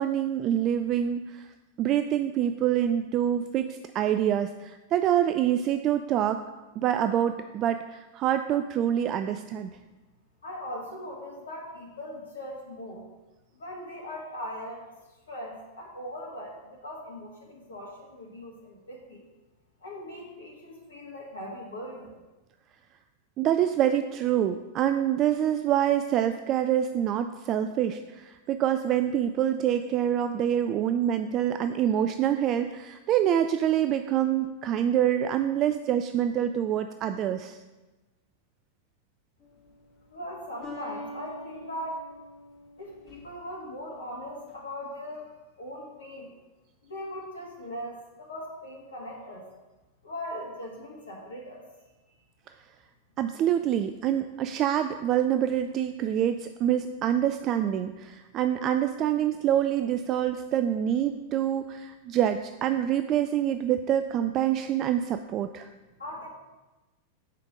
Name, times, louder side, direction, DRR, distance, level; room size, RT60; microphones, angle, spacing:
voice 1, 0.0-1.5 1.8-6.4 6.8-9.8 23.4-37.6 53.2-65.7, right 10 dB, 35° right, 9 dB, 0.3 m, -26 dB
voice 2, 10.4-13.1 13.5-14.8 15.3-19.2 19.8-22.2 40.1-42.0 42.8-46.4 46.8-49.5 50.0-51.6 66.0-66.3, equal, 70° left, -1 dB, 1.6 m, -39 dB
sound 1, 39.4-39.9 40.6-43.5, left 1 dB, 25° left, 2.9 m, -44 dB
8.2 x 5.2 x 5.1 m, 1.1 s
figure-of-eight pair, 90°, 0 cm